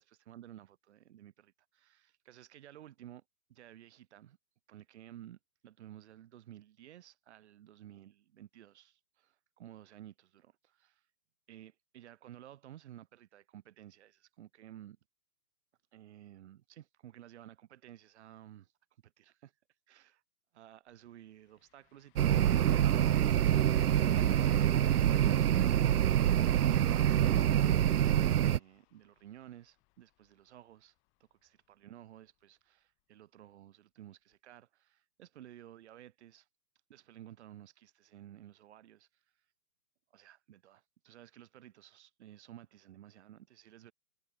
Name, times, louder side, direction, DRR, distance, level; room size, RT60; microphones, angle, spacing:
voice 1, 0.0-3.2 3.5-4.4 4.7-11.0 11.5-15.0 15.9-18.7 19.0-19.5 19.9-20.2 20.5-24.9 25.2-30.9 31.3-36.5 36.9-39.2 40.1-43.9, right 12 dB, 50° right, 3.1 m, -54 dB
sound 1, 20.9-21.0 21.3-31.1 31.5-31.6 34.3-34.4, left 28 dB, 25° left, 4.6 m, -61 dB
sound 2, 22.2-28.6, right 11 dB, 85° right, 0.6 m, -26 dB
hypercardioid pair, 135°, 45 cm